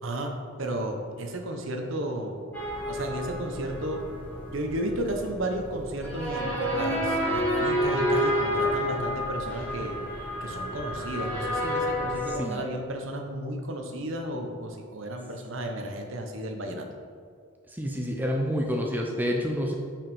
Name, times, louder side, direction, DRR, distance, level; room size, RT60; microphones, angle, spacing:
voice 1, 0.0-2.4 2.8-4.0 4.5-10.0 10.4-16.9, right 1 dB, 65° right, 3 dB, 0.9 m, -33 dB
sound 1, 2.5-12.4, equal, 10° left, 1.5 m, -29 dB
voice 2, 17.7-19.7, equal, 10° right, 1 dB, 0.5 m, -28 dB
5.6 x 5.2 x 5.4 m, 2.2 s
head